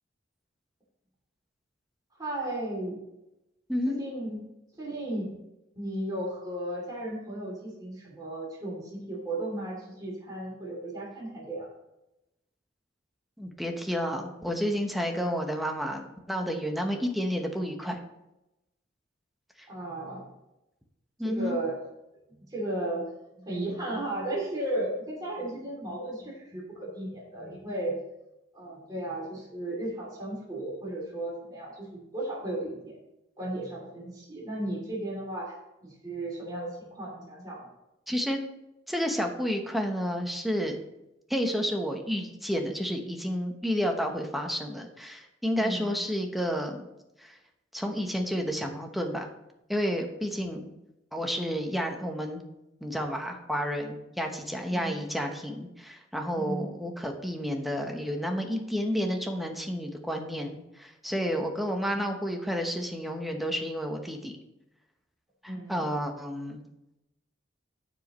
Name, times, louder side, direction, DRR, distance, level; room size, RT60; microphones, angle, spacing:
voice 1, 2.2-3.0 3.9-4.4 4.8-5.3 5.8-11.7 19.7-20.2 21.2-21.8 22.5-23.1 23.4-28.0 28.5-33.0 33.4-35.6 35.8-37.7 45.6-46.0 50.4-50.7 54.7-55.0 56.3-56.7 61.9-62.0 65.5-65.9, right 1 dB, 20° right, -5 dB, 2.9 m, -35 dB
voice 2, 13.4-18.0 19.6-19.7 21.2-21.6 38.1-38.4 38.9-40.8 41.3-46.9 47.2-47.4 47.7-49.3 49.7-50.7 51.1-52.4 52.8-64.3 65.4-66.6, equal, ahead, 3 dB, 1.0 m, -31 dB
15.0 x 5.1 x 3.1 m, 0.91 s
head